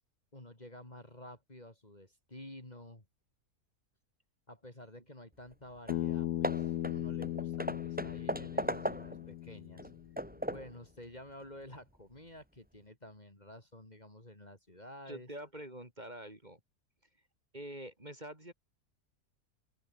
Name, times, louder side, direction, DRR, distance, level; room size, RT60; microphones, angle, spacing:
voice 1, 0.3-3.0 4.5-9.9 10.5-15.3, left 1 dB, 25° left, 4.1 m, -51 dB
Hammer / Wood, 5.5-5.6 5.9-6.1 6.4-9.3 9.8-10.8, equal, 5° right, 4.0 m, -38 dB
Bass guitar, 5.9-10.2, left 13 dB, 80° left, 1.2 m, -37 dB
voice 2, 15.1-16.6 17.5-18.5, right 1 dB, 25° right, 4.7 m, -45 dB
open air
omnidirectional pair, 1.6 m